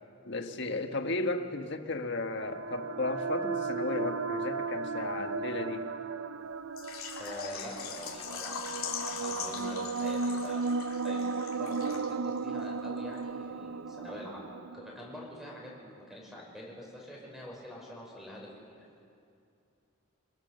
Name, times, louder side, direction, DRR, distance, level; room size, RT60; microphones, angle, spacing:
voice 1, 0.2-5.9 9.5-9.7, left 2 dB, 55° left, 6 dB, 1.5 m, -34 dB
sound 1, 2.1-15.8, right 4 dB, 75° right, 0.6 m, -35 dB
Water / Liquid, 6.8-12.4 12.6-12.7 13.2-13.3, left 7 dB, 90° left, 2.6 m, -41 dB
voice 2, 7.2-10.7 11.0-18.8, left 1 dB, ahead, -2 dB, 5.6 m, -45 dB
27.0 x 21.0 x 6.7 m, 2.5 s
head